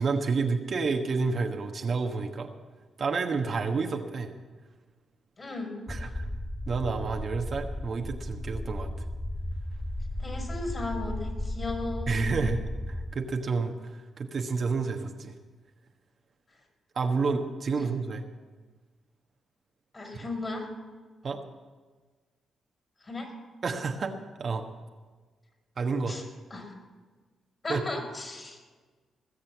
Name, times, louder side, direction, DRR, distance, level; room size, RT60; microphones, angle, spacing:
voice 1, 0.0-2.5 3.0-4.3 5.9-6.2 6.7-8.9 12.1-12.6 13.1-13.9 14.2-15.3 16.9-18.2 21.2-21.4 23.6-24.1 24.4-24.6 25.8-26.2 27.7-27.8, right 4 dB, 55° right, 4 dB, 1.3 m, -29 dB
voice 2, 5.4-5.8 6.0-6.1 10.2-12.5 19.9-20.7 23.0-23.3 26.1-26.2 26.5-26.7 27.6-28.6, left 2 dB, 40° left, 2 dB, 5.2 m, -36 dB
sound 1, 5.9-13.1, left 1 dB, 5° left, 1.0 m, -35 dB
19.5 x 7.4 x 7.3 m, 1.4 s
hypercardioid pair, 45°, 0 cm